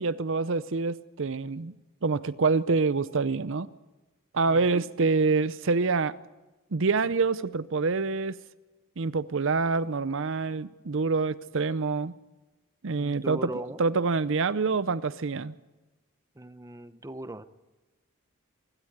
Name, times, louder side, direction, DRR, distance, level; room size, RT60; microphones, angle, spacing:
voice 1, 0.0-1.7 2.0-3.7 4.3-6.2 6.7-8.4 9.0-12.1 12.8-15.5, right 4 dB, 60° right, 16 dB, 0.6 m, -26 dB
voice 2, 13.0-13.8 16.4-17.4, right 1 dB, 15° right, 11 dB, 0.7 m, -39 dB
25.0 x 13.0 x 8.0 m, 1.1 s
head